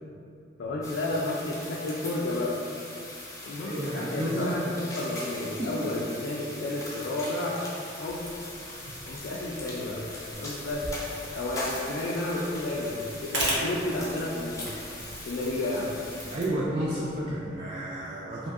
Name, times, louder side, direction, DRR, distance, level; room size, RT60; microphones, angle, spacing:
voice 1, 0.6-2.6 3.4-4.6 4.9-7.6 8.0-8.3 9.1-10.0 10.4-10.9 11.3-14.7 15.3-15.9, left 2 dB, 75° left, -4 dB, 0.3 m, -31 dB
sound 1, 0.8-16.4, left 1 dB, 20° left, 0.5 m, -41 dB
voice 2, 3.7-4.6 5.6-5.7 16.3-18.5, right 1 dB, 35° right, -6 dB, 0.3 m, -31 dB
sound 2, 8.0-17.6, right 1 dB, 75° right, 0.6 m, -39 dB
3.0 x 2.6 x 2.3 m, 2.6 s
head